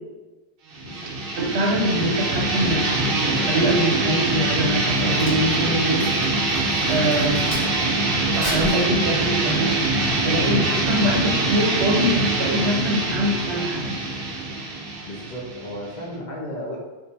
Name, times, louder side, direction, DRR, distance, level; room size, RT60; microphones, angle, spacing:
sound 1, 0.7-16.1, right 2 dB, 65° right, 0.8 m, -23 dB
voice 1, 1.4-6.1 6.9-7.4 8.4-9.8 10.2-14.0, equal, 85° right, -1 dB, 1.0 m, -24 dB
Crack, 4.8-7.9 8.3-9.5 10.0-10.3, equal, 20° left, 1.1 m, -35 dB
voice 2, 15.0-16.8, equal, 50° left, -4 dB, 0.7 m, -35 dB
2.5 x 2.3 x 4.0 m, 1.2 s
omnidirectional pair, 1.1 m